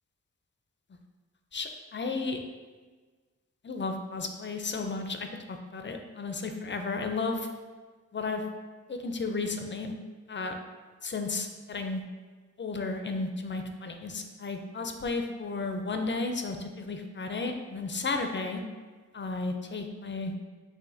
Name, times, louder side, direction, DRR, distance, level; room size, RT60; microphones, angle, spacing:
voice 1, 1.5-2.4 3.6-7.5 8.1-8.4 8.9-9.9 10.3-10.6 11.0-12.0 12.6-18.6 19.1-20.4, left 3 dB, 35° left, 5 dB, 0.4 m, -33 dB
4.7 x 3.0 x 2.6 m, 1.4 s
wide cardioid pair, 85°, 32 cm